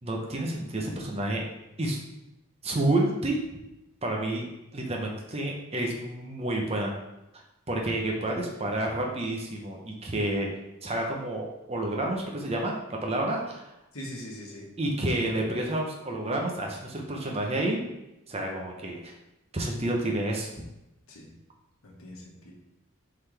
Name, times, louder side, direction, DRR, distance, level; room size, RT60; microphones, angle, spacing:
voice 1, 0.0-1.4 1.8-2.0 2.6-3.4 4.0-4.5 4.7-6.9 7.7-10.5 10.8-12.7 13.0-13.7 14.8-17.8 18.3-19.1 19.5-20.5, right 1 dB, 30° right, 0 dB, 0.8 m, -29 dB
voice 2, 13.9-14.7 21.1-21.3 21.8-22.5, equal, 75° left, -3 dB, 1.6 m, -41 dB
7.9 x 4.0 x 3.4 m, 0.92 s
head